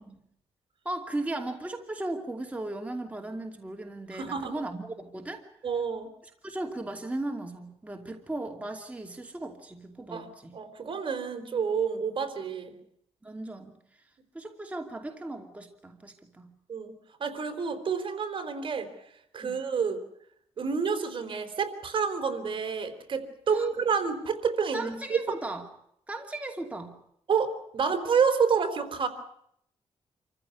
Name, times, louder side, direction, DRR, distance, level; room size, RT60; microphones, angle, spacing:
voice 1, 0.8-5.4 6.4-10.6 13.2-14.1 14.3-16.5 19.4-19.6 23.5-23.7 24.7-25.6 26.1-27.0, right 2 dB, 15° right, 4 dB, 2.7 m, -37 dB
voice 2, 4.1-4.6 5.6-6.1 10.1-10.3 10.5-12.7 16.7-16.9 17.2-18.9 19.3-20.0 20.6-25.2 27.3-29.1, right 6 dB, 50° right, 8 dB, 4.0 m, -29 dB
27.5 x 15.0 x 9.5 m, 0.72 s
cardioid pair, 115°, 11 cm